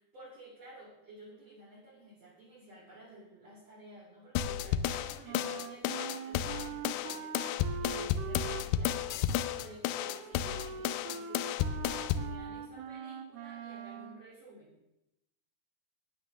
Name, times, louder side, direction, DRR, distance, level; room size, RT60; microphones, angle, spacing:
voice 1, 0.1-14.7, right 2 dB, 40° right, -8 dB, 4.1 m, -53 dB
sound 1, 4.4-12.3, left 10 dB, 90° left, 2.9 m, -32 dB
Wind instrument woodwind instrument, 5.2-14.3, right 7 dB, 75° right, 2.5 m, -43 dB
10.0 x 9.8 x 6.4 m, 0.88 s
omnidirectional pair, 5.0 m